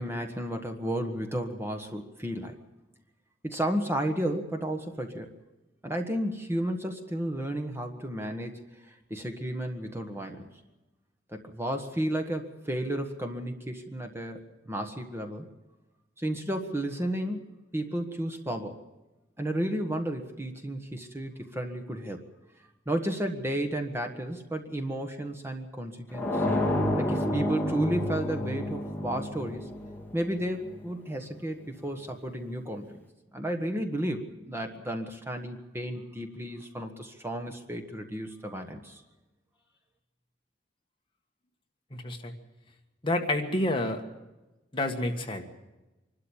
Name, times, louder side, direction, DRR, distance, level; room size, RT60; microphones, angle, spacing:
voice 1, 0.0-2.6 3.4-5.3 5.8-10.5 11.3-15.5 16.2-18.8 19.4-22.2 22.9-26.5 27.0-29.7 30.1-33.0 33.3-39.0, right 1 dB, 15° right, 4 dB, 1.4 m, -33 dB
sound 1, 26.1-30.9, left 1 dB, 10° left, 2.4 m, -30 dB
voice 2, 41.9-42.3 43.0-44.0 44.7-45.5, left 1 dB, 25° left, 3 dB, 1.6 m, -29 dB
25.0 x 12.5 x 8.8 m, 1.1 s
head